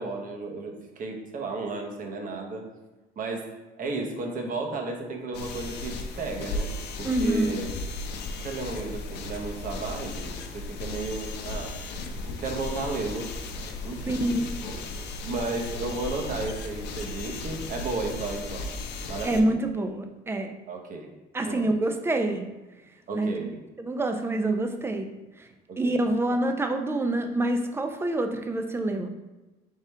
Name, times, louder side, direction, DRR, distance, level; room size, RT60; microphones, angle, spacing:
voice 1, 0.0-2.7 3.2-7.7 8.4-11.8 12.2-13.5 13.8-14.2 14.6-14.8 15.2-18.7 19.0-19.6 20.7-21.1 21.4-21.7 23.1-23.6 25.7-26.0, right 3 dB, 55° right, 2 dB, 1.0 m, -34 dB
sound 1, 5.3-19.4, left 2 dB, 80° left, 0.6 m, -35 dB
voice 2, 7.0-7.6 14.1-14.5 19.2-20.5 21.3-22.5 23.1-23.3 23.8-25.1 25.4-25.5 25.8-29.1, right 1 dB, 15° right, 5 dB, 0.5 m, -26 dB
4.2 x 3.7 x 3.3 m, 1.1 s
cardioid pair, 110°, 17 cm